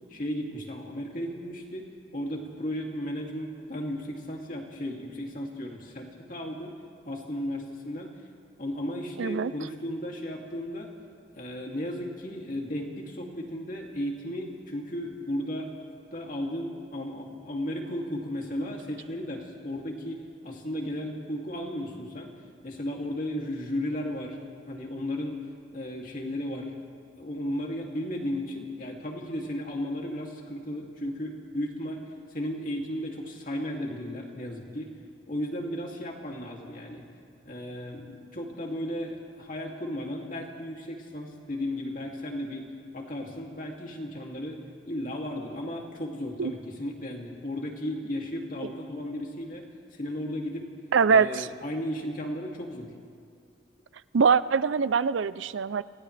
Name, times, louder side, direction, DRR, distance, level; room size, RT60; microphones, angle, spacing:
voice 1, 0.1-6.8 7.0-8.2 8.6-10.9 11.3-22.3 22.6-24.4 24.7-25.4 25.7-26.7 27.2-32.0 32.3-34.9 35.3-37.1 37.4-42.7 42.9-50.7 51.1-52.9, left 1 dB, 45° left, 0 dB, 2.6 m, -35 dB
voice 2, 9.2-9.5 46.4-46.5 50.9-51.5 54.1-55.8, right 5 dB, 80° right, 16 dB, 0.5 m, -23 dB
29.0 x 27.5 x 3.4 m, 2.2 s
head